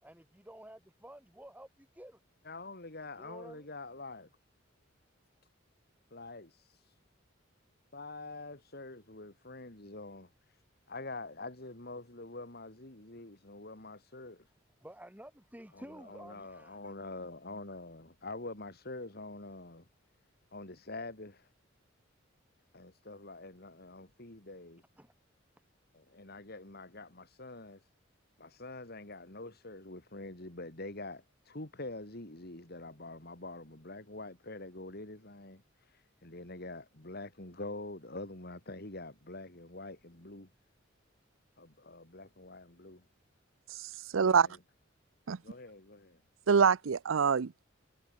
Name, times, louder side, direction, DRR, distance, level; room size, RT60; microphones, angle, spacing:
voice 1, 0.0-2.2 3.2-3.7 14.8-16.9 25.0-25.1, right 1 dB, 10° right, 4.3 m, -51 dB
voice 2, 2.4-4.3 6.1-7.0 7.9-10.6 10.9-14.5 15.7-19.9 20.5-21.5 22.7-24.8 25.9-27.9 28.4-40.5 41.6-43.1 44.1-44.6 45.4-46.2, left 2 dB, 50° left, 3.4 m, -46 dB
voice 3, 44.1-44.5 45.3-45.4 46.5-47.6, right 6 dB, 85° right, 0.6 m, -25 dB
head